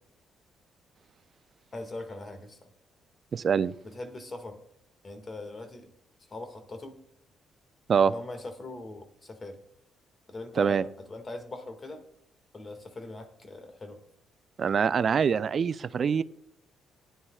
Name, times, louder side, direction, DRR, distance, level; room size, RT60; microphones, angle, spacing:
voice 1, 1.7-2.6 3.8-4.6 5.0-5.9 6.3-7.0 8.1-9.6 10.3-12.0 12.5-14.0, left 2 dB, 35° left, 7 dB, 1.8 m, -41 dB
voice 2, 3.3-3.7 7.9-8.1 10.6-10.8 14.6-16.2, right 6 dB, 50° right, 15 dB, 0.5 m, -24 dB
16.0 x 10.5 x 2.4 m, 0.70 s
cardioid pair, 90°, 0 cm